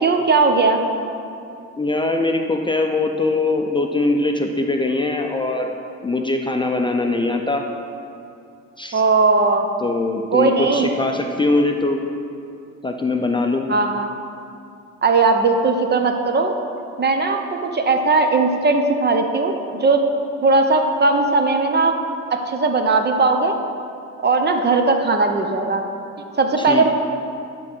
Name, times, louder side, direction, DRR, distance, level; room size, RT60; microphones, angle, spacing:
voice 1, 0.0-0.8 8.9-9.7 10.3-10.9 13.7-14.1 15.0-16.5 17.0-20.0 20.4-21.9 22.5-23.5 24.2-25.8 26.4-26.9, right 3 dB, 35° right, 5 dB, 0.8 m, -18 dB
voice 2, 1.8-5.7 6.0-7.6 8.8-9.0 9.8-12.0 12.8-13.7 26.6-26.9, left 2 dB, 15° left, 3 dB, 0.5 m, -21 dB
11.0 x 3.9 x 6.1 m, 2.5 s
cardioid pair, 90°, 30 cm